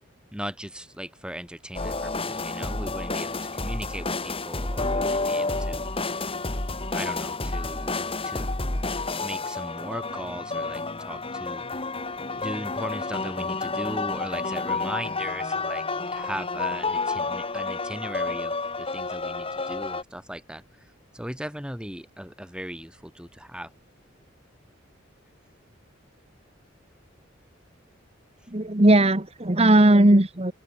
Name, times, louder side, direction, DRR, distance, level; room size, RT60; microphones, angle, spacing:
voice 1, 0.3-6.2 6.9-8.0 8.2-8.5 9.2-11.6 12.4-15.8 16.1-20.6 21.1-23.7, equal, 5° right, 6.3 m, -38 dB
sound 1, 1.7-20.0, left 3 dB, 30° left, 2.7 m, -30 dB
voice 2, 28.5-30.5, right 1 dB, 30° right, 1.5 m, -18 dB
open air
head